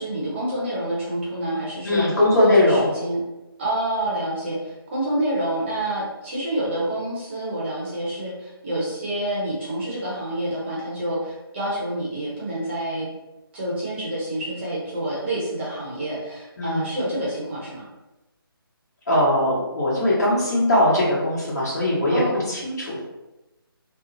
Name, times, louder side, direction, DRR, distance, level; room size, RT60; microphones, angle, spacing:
voice 1, 0.0-2.0 2.4-3.2 3.6-13.1 13.5-17.9 22.1-22.4, right 1 dB, 30° right, -6 dB, 0.7 m, -28 dB
voice 2, 1.8-2.9 16.6-16.9 19.1-23.0, left 1 dB, 45° left, -7 dB, 1.1 m, -20 dB
2.9 x 2.0 x 2.5 m, 1.0 s
figure-of-eight pair, 155°, 13 cm